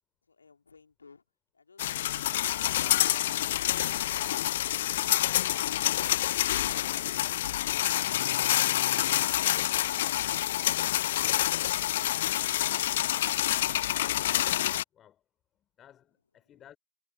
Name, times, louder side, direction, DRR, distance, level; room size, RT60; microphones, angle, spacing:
voice 1, 0.2-1.2 16.5-16.7, left 4 dB, 75° left, 3.1 m, -59 dB
sound 1, 1.8-14.8, left 13 dB, 55° left, 0.3 m, -27 dB
voice 2, 14.9-15.3 15.5-16.8, left 10 dB, 30° left, 4.0 m, -58 dB
figure-of-eight pair, 90°, 0 cm